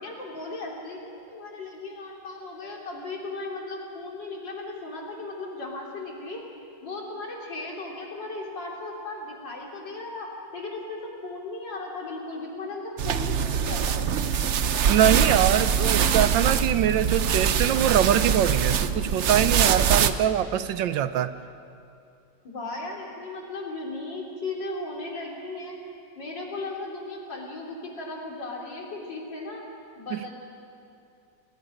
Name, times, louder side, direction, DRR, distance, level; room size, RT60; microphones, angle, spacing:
voice 1, 0.0-6.4 6.8-13.9 22.4-25.8 26.2-29.6 30.0-30.3, left 2 dB, 70° left, -2 dB, 4.0 m, -36 dB
sound 1, 13.0-20.1, right 7 dB, 65° right, 0.7 m, -23 dB
voice 2, 14.9-21.3 30.1-30.3, right 10 dB, 80° right, 13 dB, 1.4 m, -23 dB
28.5 x 19.5 x 5.2 m, 2.6 s
omnidirectional pair, 2.1 m